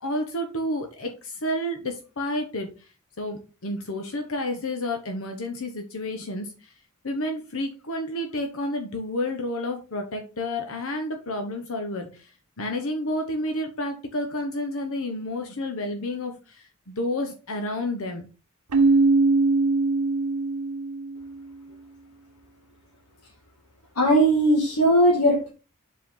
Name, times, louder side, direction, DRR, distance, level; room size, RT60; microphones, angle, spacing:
voice 1, 0.0-2.7 3.2-6.5 7.0-12.3 12.6-18.3, left 1 dB, 65° left, 5 dB, 1.0 m, -30 dB
Keyboard (musical), 18.7-21.4, right 3 dB, 85° right, 0.8 m, -21 dB
voice 2, 24.0-25.5, right 1 dB, 85° left, -2 dB, 1.9 m, -19 dB
7.3 x 4.6 x 3.8 m, 0.34 s
head